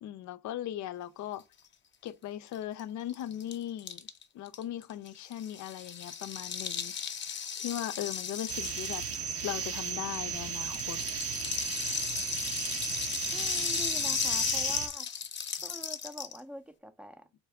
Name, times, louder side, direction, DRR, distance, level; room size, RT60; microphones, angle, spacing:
voice 1, 0.0-1.4 2.0-4.1 4.3-6.9 7.6-9.0 9.4-11.0, left 12 dB, 70° left, 0.5 m, -38 dB
Rattle (instrument), 2.5-2.6 2.8-2.9 3.1-10.2 10.5-16.4, left 7 dB, 40° left, 0.7 m, -35 dB
sound 1, 8.5-14.9, right 6 dB, 50° right, 0.7 m, -35 dB
voice 2, 13.3-15.1 15.6-17.3, equal, 5° right, 0.5 m, -45 dB
4.2 x 2.3 x 4.6 m
cardioid pair, 90°, 30 cm